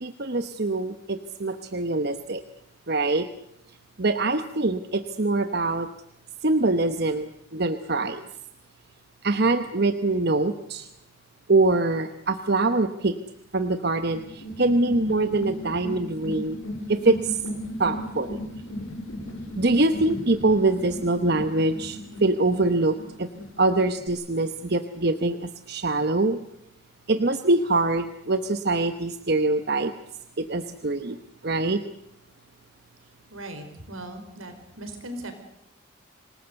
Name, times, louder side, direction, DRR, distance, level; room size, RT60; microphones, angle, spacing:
voice 1, 0.0-2.4 2.9-3.3 4.0-5.9 6.4-8.2 9.2-10.9 11.5-13.1 13.5-16.6 16.9-17.4 17.8-18.4 19.6-23.3 23.6-26.4 27.1-29.9 30.4-31.2 31.4-31.8, right 2 dB, 50° right, 9 dB, 1.0 m, -24 dB
sound 1, 14.1-24.1, equal, 80° left, 4.9 m, -37 dB
voice 2, 33.3-35.3, right 1 dB, 80° right, 7 dB, 4.9 m, -38 dB
26.0 x 19.5 x 8.1 m, 0.79 s
head